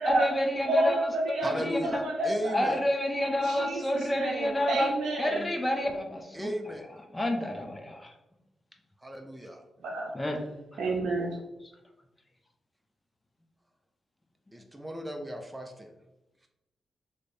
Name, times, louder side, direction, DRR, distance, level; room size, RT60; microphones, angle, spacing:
voice 1, 0.1-1.0 1.4-2.0 2.5-4.9 5.2-6.5 7.1-8.1 10.1-10.4, left 1 dB, 25° left, 3 dB, 0.9 m, -29 dB
voice 2, 0.6-2.8 3.2-5.5 9.8-10.1 10.8-11.4, right 2 dB, 80° right, -3 dB, 0.6 m, -30 dB
voice 3, 1.4-2.8 6.3-6.8 9.0-9.6 14.5-15.9, equal, 10° right, 3 dB, 0.6 m, -36 dB
3.2 x 3.2 x 4.3 m, 0.95 s
supercardioid pair, 50°, 0 cm